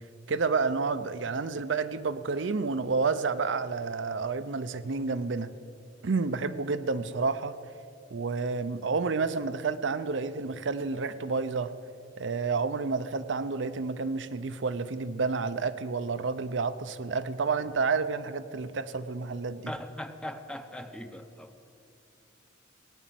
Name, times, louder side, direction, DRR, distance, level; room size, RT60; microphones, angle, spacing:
voice 1, 0.3-5.5 6.0-7.5 8.1-11.7 12.2-19.7, right 4 dB, 70° right, 0.6 m, -30 dB
voice 2, 19.7-21.6, equal, 5° left, 0.7 m, -40 dB
18.0 x 9.2 x 7.6 m
head